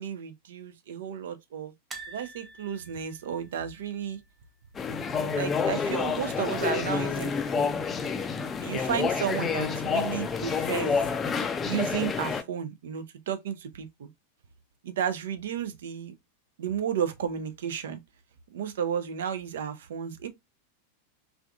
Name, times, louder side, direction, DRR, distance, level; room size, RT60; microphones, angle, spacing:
voice 1, 0.0-1.7 2.1-4.2 5.3-7.8 8.6-11.0 11.7-14.1 14.8-16.1 16.6-18.0 18.5-20.3, right 8 dB, 60° right, 0.4 m, -33 dB
sound 1, 1.9-5.0 5.2-5.4 5.7-5.8 7.0-7.5 8.1-8.2, right 3 dB, 15° right, 0.7 m, -47 dB
sound 2, 4.8-12.4, left 5 dB, 20° left, 0.4 m, -28 dB
3.4 x 2.4 x 2.3 m
figure-of-eight pair, 90°, 0 cm